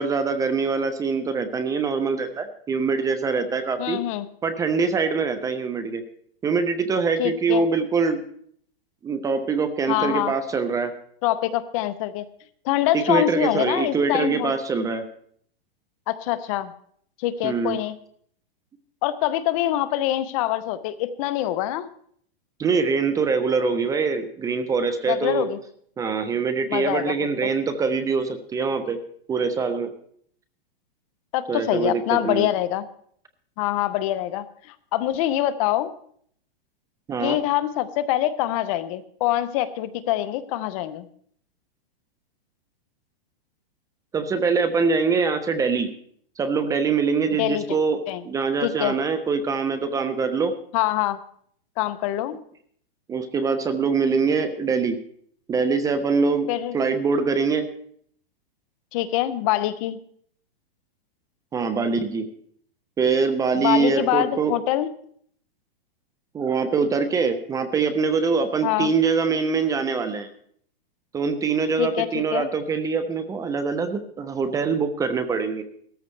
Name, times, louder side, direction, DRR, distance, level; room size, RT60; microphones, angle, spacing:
voice 1, 0.0-4.0 4.4-6.0 6.4-8.2 9.0-10.9 12.9-15.0 17.4-17.8 22.6-25.5 26.0-29.0 29.3-29.9 31.5-32.5 37.1-37.4 44.1-45.9 46.4-48.0 48.2-50.5 53.1-55.0 55.5-56.5 56.7-57.7 61.5-62.3 63.0-64.5 66.3-70.3 71.1-75.6, right 5 dB, 10° right, 10 dB, 0.6 m, -23 dB
voice 2, 3.8-4.3 7.2-7.6 9.9-10.3 11.2-12.3 12.6-14.5 16.1-16.7 17.2-17.9 19.0-21.9 25.1-25.6 26.7-27.3 31.3-32.8 33.6-35.9 37.2-41.1 47.4-47.6 48.1-48.2 48.6-48.9 50.7-51.2 51.8-52.4 56.5-56.7 58.9-60.0 63.5-64.9 68.6-68.9 71.8-72.5, left 13 dB, 35° left, 13 dB, 0.7 m, -24 dB
17.0 x 13.5 x 3.3 m, 0.62 s
hypercardioid pair, 150°, 29 cm